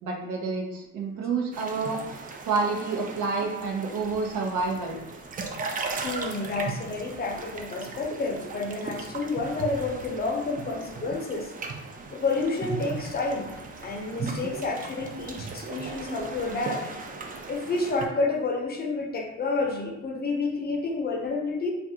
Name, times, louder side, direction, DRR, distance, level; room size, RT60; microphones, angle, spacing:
voice 1, 0.0-2.0 2.5-5.0, right 4 dB, 80° right, 1 dB, 0.6 m, -28 dB
sound 1, 1.5-18.1, right 4 dB, 30° right, 0.3 m, -37 dB
voice 2, 6.0-11.5 12.1-13.5 13.8-16.9 17.5-21.7, left 3 dB, 30° left, 1 dB, 0.6 m, -29 dB
2.5 x 2.2 x 2.7 m, 0.92 s
cardioid pair, 90°, 30 cm